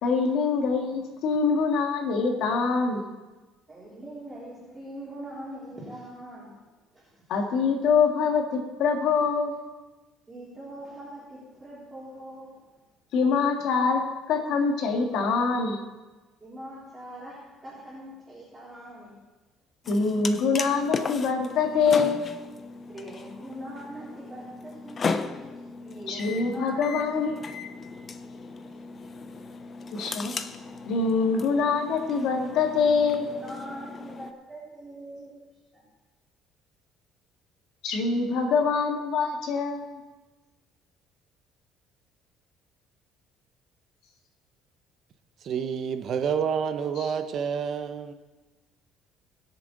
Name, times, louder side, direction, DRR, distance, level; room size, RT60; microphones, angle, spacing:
voice 1, 0.0-3.0 7.3-9.5 13.1-15.8 19.9-22.3 26.1-27.4 29.9-30.3 30.9-33.3 37.8-40.0, left 5 dB, 70° left, 2 dB, 1.9 m, -24 dB
voice 2, 3.7-6.5 6.9-7.1 10.3-12.6 16.4-19.1 22.9-25.3 25.8-27.0 28.2-28.4 28.6-28.8 33.3-35.3 35.7-35.8, right 1 dB, 15° right, -9 dB, 3.5 m, -42 dB
sound 1, 19.8-34.3, left 4 dB, 30° left, 0.6 m, -36 dB
voice 3, 45.4-48.1, right 7 dB, 50° right, 8 dB, 0.9 m, -28 dB
20.0 x 6.9 x 4.0 m, 1.2 s
cardioid pair, 135°, 0 cm